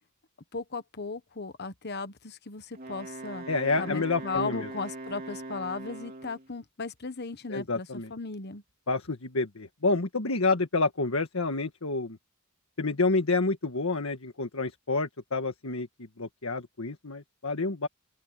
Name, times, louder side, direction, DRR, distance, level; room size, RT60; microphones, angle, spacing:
voice 1, 0.5-3.5 3.8-8.6, left 4 dB, 50° left, 1.3 m, -36 dB
Wind instrument woodwind instrument, 2.7-6.5, right 2 dB, 45° right, 3.3 m, -41 dB
voice 2, 3.5-4.7 7.5-8.1 8.9-12.2 12.8-15.9 16.2-17.9, left 3 dB, 80° left, 1.6 m, -28 dB
open air
head